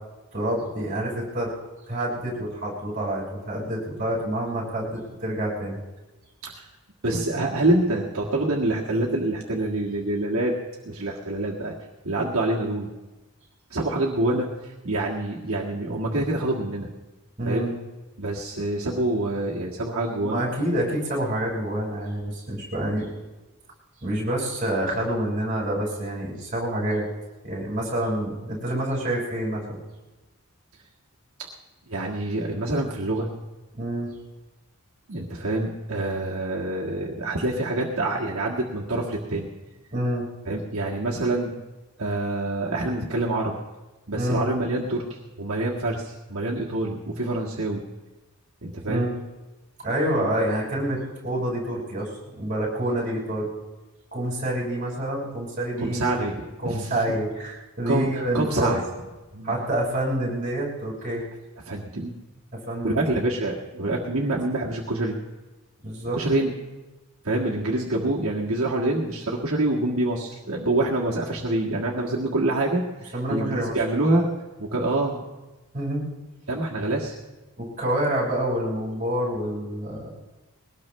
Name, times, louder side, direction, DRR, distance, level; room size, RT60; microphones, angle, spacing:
voice 1, 0.3-1.5 1.9-5.8 17.4-17.7 20.2-23.1 24.0-27.1 27.4-29.8 33.7-34.1 39.9-40.3 44.2-44.5 48.9-49.2 49.8-53.5 54.1-56.2 56.6-58.8 59.4-61.2 62.5-63.0 65.8-66.2 73.1-73.8 75.7-76.1 77.6-80.1, right 1 dB, 35° right, -3 dB, 5.3 m, -27 dB
voice 2, 7.0-10.5 10.8-11.7 12.0-12.9 13.7-16.9 17.4-17.7 18.2-20.4 31.9-33.3 35.1-39.5 40.4-41.5 42.0-43.5 44.1-47.8 48.6-49.1 55.8-56.3 56.6-57.0 57.8-58.1 58.3-58.8 59.3-59.5 61.7-62.1 62.8-65.2 66.1-66.5 67.2-74.3 74.6-75.2 76.5-77.1, right 2 dB, 80° right, -3 dB, 1.7 m, -26 dB
21.5 x 18.0 x 3.2 m, 1.1 s
head